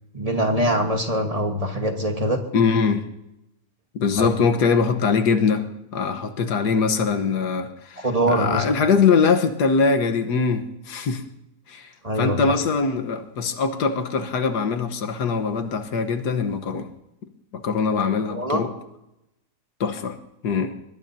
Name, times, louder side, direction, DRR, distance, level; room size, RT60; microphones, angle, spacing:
voice 1, 0.1-2.4 4.2-4.3 8.0-8.6 12.0-12.4 18.3-18.6, right 1 dB, 25° right, 4 dB, 1.3 m, -23 dB
voice 2, 2.5-3.0 3.9-5.6 5.9-11.3 11.7-16.9 17.5-18.7 19.8-20.2 20.4-20.7, left 5 dB, 85° left, 7 dB, 1.7 m, -22 dB
22.5 x 21.0 x 2.7 m, 0.89 s
omnidirectional pair, 1.7 m